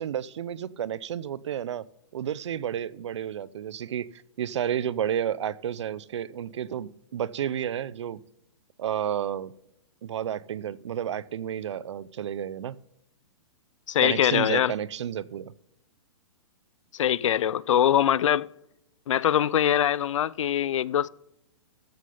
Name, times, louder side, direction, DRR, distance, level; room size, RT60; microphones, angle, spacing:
voice 1, 0.0-1.8 2.1-8.2 8.8-9.5 10.0-12.8 14.0-15.5, right 9 dB, 70° right, 0.5 m, -31 dB
voice 2, 13.9-14.7 16.9-18.5 19.1-21.1, left 10 dB, 90° left, 0.4 m, -23 dB
14.5 x 6.5 x 5.4 m
hypercardioid pair, 175°, 16 cm